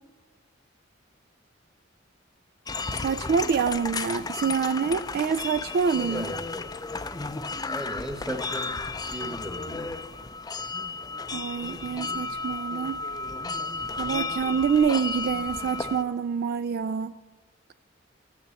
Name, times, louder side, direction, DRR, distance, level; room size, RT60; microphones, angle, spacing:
sound 1, 2.7-16.0, left 3 dB, 20° left, 0.5 m, -33 dB
voice 1, 3.0-6.4 11.3-13.0 14.0-17.2, right 6 dB, 50° right, 14 dB, 0.3 m, -26 dB
voice 2, 6.0-6.4 7.6-8.7 9.1-10.0, equal, 5° right, 6 dB, 1.1 m, -36 dB
13.5 x 6.9 x 7.5 m, 1.3 s
head